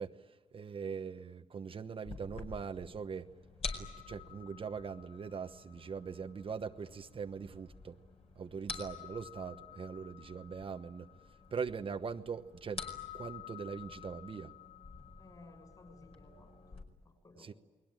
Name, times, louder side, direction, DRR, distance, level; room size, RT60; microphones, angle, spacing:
voice 1, 0.0-3.3 3.8-8.0 8.4-11.1 11.5-12.8 13.1-14.5 17.4-17.5, right 6 dB, 45° right, 7 dB, 1.1 m, -41 dB
sound 1, 2.1-16.8, left 5 dB, 45° left, 5.0 m, -48 dB
voice 2, 15.2-16.5 17.0-17.5, left 2 dB, 30° left, 7 dB, 6.2 m, -57 dB
29.5 x 21.0 x 9.1 m, 1.3 s
cardioid pair, 120°, 13 cm